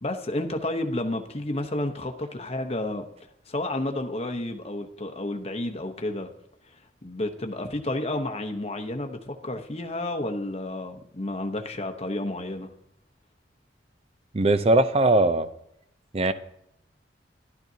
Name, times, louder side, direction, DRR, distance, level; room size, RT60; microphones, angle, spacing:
voice 1, 0.0-3.0 3.5-6.3 7.0-12.7, left 1 dB, 35° left, 0.9 m, -31 dB
voice 2, 14.3-15.5 16.1-16.3, right 2 dB, 30° right, 0.5 m, -20 dB
12.0 x 12.0 x 2.8 m
head